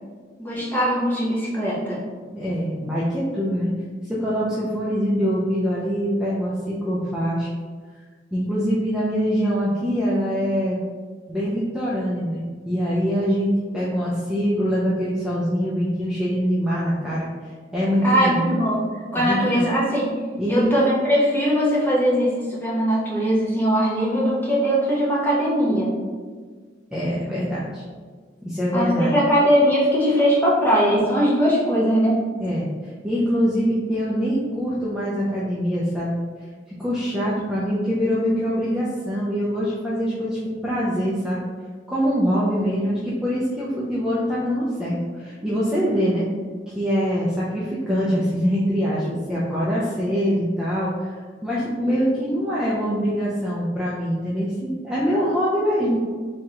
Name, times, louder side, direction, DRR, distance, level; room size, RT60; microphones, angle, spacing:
voice 1, 0.4-2.0 18.0-18.8 19.1-20.1 20.5-25.9 28.7-32.2, equal, 10° left, -7 dB, 1.0 m, -20 dB
voice 2, 2.3-3.7 4.1-7.5 8.3-10.8 11.3-17.3 17.7-18.5 19.2-19.7 20.4-20.7 26.9-27.8 28.4-29.1 32.4-36.2 36.8-41.4 41.9-46.2 46.7-51.1 51.4-56.0, equal, 5° right, -8 dB, 0.5 m, -24 dB
3.6 x 3.3 x 2.9 m, 1.5 s
head